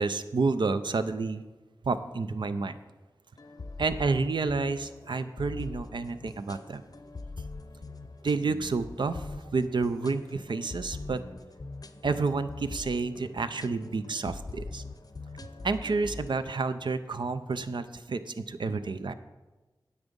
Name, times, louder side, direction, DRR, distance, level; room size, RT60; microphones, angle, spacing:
voice 1, 0.0-1.4 1.8-2.7 3.8-6.8 8.2-11.2 12.0-14.8 15.6-19.1, right 4 dB, 75° right, 11 dB, 0.5 m, -30 dB
sound 1, 3.4-16.3, left 3 dB, 50° left, 0.6 m, -42 dB
9.8 x 7.2 x 5.3 m, 1.2 s
wide cardioid pair, 50°, 8 cm